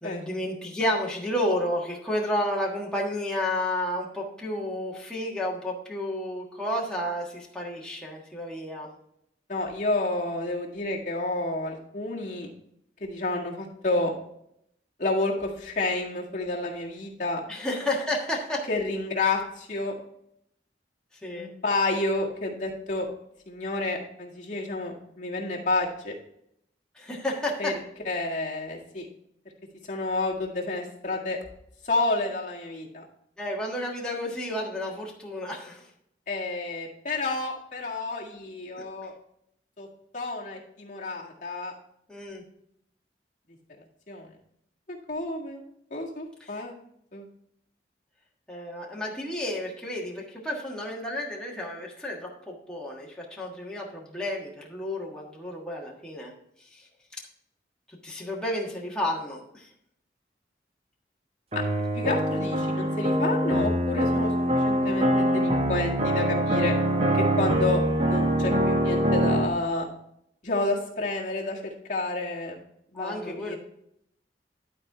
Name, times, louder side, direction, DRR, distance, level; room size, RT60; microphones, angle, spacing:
voice 1, 0.0-8.9 17.5-18.7 21.2-21.5 26.9-27.8 33.4-35.9 42.1-42.4 46.4-46.6 48.5-56.3 56.6-56.9 57.9-59.7 72.9-73.6, left 1 dB, 5° left, -3 dB, 1.5 m, -31 dB
voice 2, 9.5-12.5 13.0-14.1 15.0-17.4 18.7-20.0 21.3-23.1 23.5-26.2 27.6-27.7 28.1-29.1 29.9-31.4 31.8-33.1 36.3-39.1 39.8-39.9 40.1-41.7 44.1-44.3 44.9-45.6 45.9-46.7 47.1-47.3 61.5-61.6 61.9-66.7 67.1-69.9 70.4-72.6 72.9-73.6, left 2 dB, 45° left, -3 dB, 1.8 m, -30 dB
sound 1, 61.5-69.5, right 1 dB, 35° right, 0.8 m, -24 dB
12.0 x 4.4 x 4.7 m, 0.75 s
head